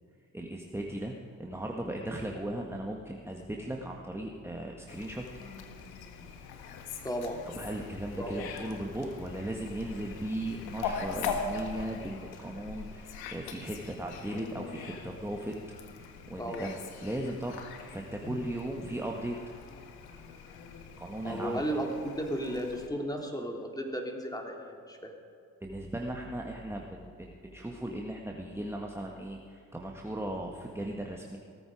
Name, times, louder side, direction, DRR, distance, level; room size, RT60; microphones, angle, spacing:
voice 1, 0.3-1.1 1.4-5.3 7.6-15.5 16.0-19.4 21.0-21.6 25.6-31.4, right 1 dB, 5° right, 0 dB, 1.7 m, -37 dB
Fowl, 4.9-22.9, left 5 dB, 70° left, 1.7 m, -42 dB
voice 2, 7.0-7.4 8.2-8.3 16.4-16.7 18.2-18.4 21.2-25.1, right 1 dB, 10° left, 1 dB, 3.3 m, -34 dB
18.0 x 14.0 x 5.1 m, 2.5 s
hypercardioid pair, 45°, 39 cm